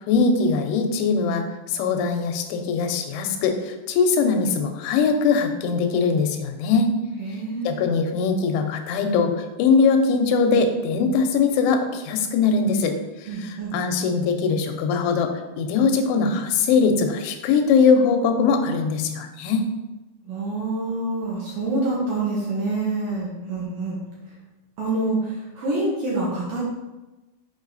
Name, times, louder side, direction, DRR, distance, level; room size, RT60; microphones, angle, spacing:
voice 1, 0.1-6.9 7.6-12.9 13.2-19.6, left 5 dB, 85° left, 6 dB, 3.1 m, -21 dB
voice 2, 7.2-7.9 13.3-13.7 20.3-24.0 24.8-26.6, right 2 dB, 65° right, -6 dB, 2.5 m, -26 dB
7.3 x 5.2 x 4.0 m, 1.1 s
omnidirectional pair, 5.3 m